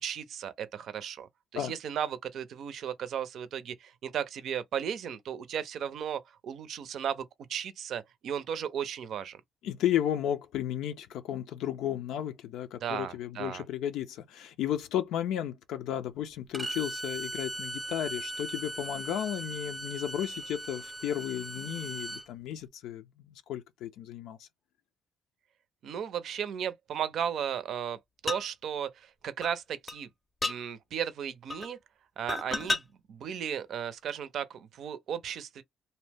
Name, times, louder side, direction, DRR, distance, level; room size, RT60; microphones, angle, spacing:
voice 1, 0.0-9.4 12.8-13.6 25.8-28.0 28.2-30.1 30.4-31.8 32.2-35.6, right 8 dB, 70° right, 0.5 m, -35 dB
voice 2, 9.6-24.5, left 11 dB, 90° left, 0.4 m, -33 dB
Bowed string instrument, 16.5-22.2, right 2 dB, 15° right, 0.6 m, -39 dB
sound 1, 28.3-28.5 29.4-29.5 29.9-30.0 30.4-30.6 31.5-31.7 32.3-32.8 33.7-33.8, left 2 dB, 25° left, 0.5 m, -31 dB
2.7 x 2.1 x 3.3 m
cardioid pair, 90°, 0 cm